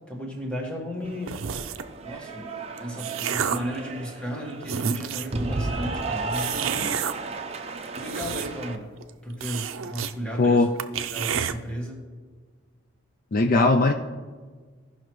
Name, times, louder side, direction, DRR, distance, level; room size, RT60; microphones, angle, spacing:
voice 1, 0.1-1.4 2.0-2.5 2.8-6.9 7.9-8.9 9.2-10.7 11.1-12.0, equal, 5° left, 0 dB, 1.4 m, -34 dB
Cheering / Applause, 1.0-8.8, right 3 dB, 30° right, 0.6 m, -34 dB
sound 1, 1.3-1.9 2.6-3.8 4.3-4.4 4.6-5.4 6.3-7.1 7.8-8.7 9.0-9.1 9.4-10.1 10.5-10.6 10.8-11.5, right 8 dB, 90° right, 0.5 m, -30 dB
voice 2, 10.4-10.7 13.3-13.9, left 3 dB, 45° left, 6 dB, 0.4 m, -19 dB
16.5 x 5.7 x 3.1 m, 1.5 s
head